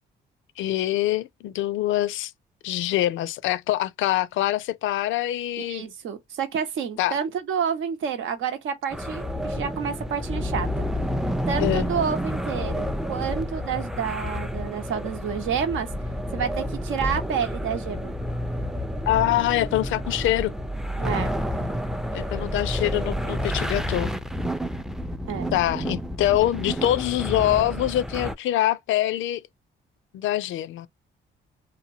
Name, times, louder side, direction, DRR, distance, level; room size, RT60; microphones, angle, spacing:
voice 1, 0.6-2.3 2.6-5.9 7.0-7.2 11.6-11.9 19.1-20.5 22.1-24.1 25.5-29.4 30.1-30.9, left 14 dB, 75° left, 0.4 m, -24 dB
voice 2, 5.6-10.7 11.5-15.9 16.3-18.1 21.0-21.3 25.3-25.5, right 7 dB, 80° right, 0.9 m, -29 dB
sound 1, 8.9-28.3, equal, ahead, 0.4 m, -29 dB
2.8 x 2.1 x 2.6 m
cardioid pair, 90°, 20 cm